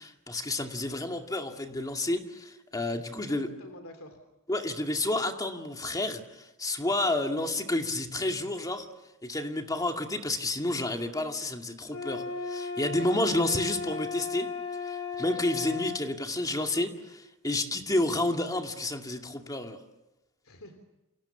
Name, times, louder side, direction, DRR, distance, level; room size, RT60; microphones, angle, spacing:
voice 1, 0.0-3.5 4.5-8.9 9.2-14.5 14.8-19.8, left 2 dB, 15° left, 4 dB, 2.2 m, -30 dB
voice 2, 2.7-4.2 20.4-20.8, left 1 dB, 70° left, 7 dB, 3.1 m, -49 dB
sound 1, 11.9-16.0, left 4 dB, 90° left, 2.5 m, -35 dB
29.0 x 28.0 x 7.1 m, 0.95 s
head